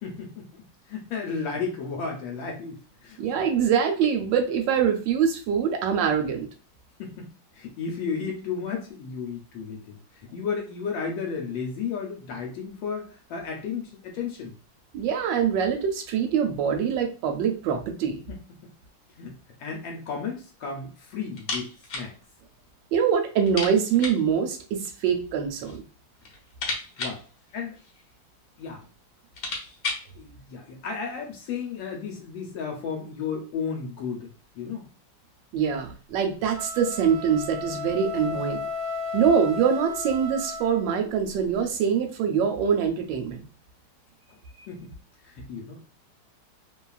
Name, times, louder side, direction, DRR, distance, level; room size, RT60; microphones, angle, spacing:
voice 1, 0.0-0.6 0.9-2.8 3.0-3.4 7.0-14.5 18.3-18.7 19.2-22.1 27.0-27.2 27.5-27.8 28.6-28.8 30.1-34.3 34.6-34.9 44.7-44.9 45.2-45.9, left 5 dB, 80° left, 1 dB, 1.3 m, -33 dB
voice 2, 3.2-6.5 14.9-18.2 22.9-25.8 35.5-38.6 39.1-43.4, right 7 dB, 80° right, 4 dB, 1.2 m, -24 dB
sound 1, 21.3-22.1 22.4-22.5 22.8-22.9 23.4-24.3 25.2-25.8 26.1-28.1 28.8-28.9 29.2-30.1, left 3 dB, 60° left, 1.1 m, -34 dB
sound 2, 36.5-41.0, left 3 dB, 40° left, 0.6 m, -34 dB
3.0 x 2.3 x 2.3 m, 0.37 s
omnidirectional pair, 2.1 m